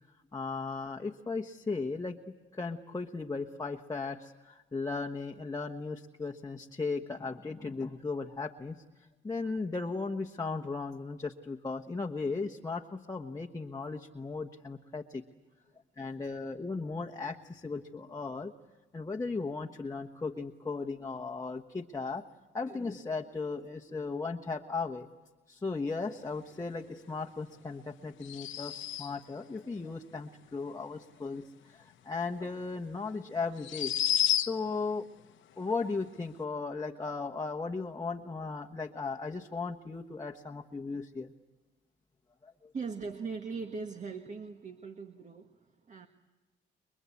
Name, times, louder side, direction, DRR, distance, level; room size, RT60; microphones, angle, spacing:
voice 1, 0.3-2.2 2.5-8.8 9.2-15.2 16.0-18.5 18.9-22.2 22.5-25.1 25.5-33.9 34.4-35.1 35.6-41.3 42.4-42.7, left 4 dB, 20° left, 1 dB, 1.2 m, -36 dB
sound 1, 28.2-29.3 32.4-32.5 33.6-34.8, left 10 dB, 75° left, 1.0 m, -31 dB
voice 2, 42.7-46.1, right 4 dB, 40° right, 6 dB, 1.6 m, -40 dB
30.0 x 22.0 x 8.5 m, 1.1 s
cardioid pair, 90°, 20 cm